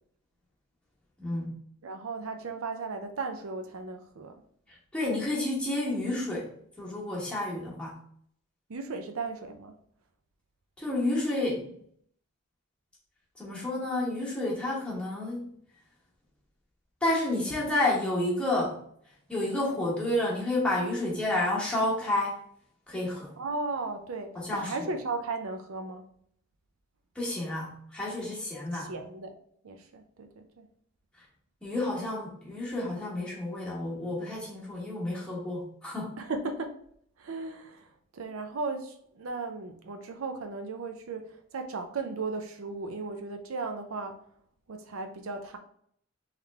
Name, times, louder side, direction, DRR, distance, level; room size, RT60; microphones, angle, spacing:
voice 1, 1.2-1.5 4.7-6.5 6.8-8.0 10.8-11.8 13.4-15.5 17.0-18.8 19.3-22.4 22.9-23.3 24.3-24.9 27.1-28.9 31.6-36.2, left 1 dB, 5° left, -6 dB, 1.3 m, -30 dB
voice 2, 1.8-4.3 8.7-9.7 23.4-26.0 28.7-29.4 29.6-30.7 36.2-36.7 37.2-44.2 44.7-45.6, right 3 dB, 75° right, 6 dB, 0.5 m, -36 dB
3.7 x 3.1 x 3.4 m, 0.65 s
head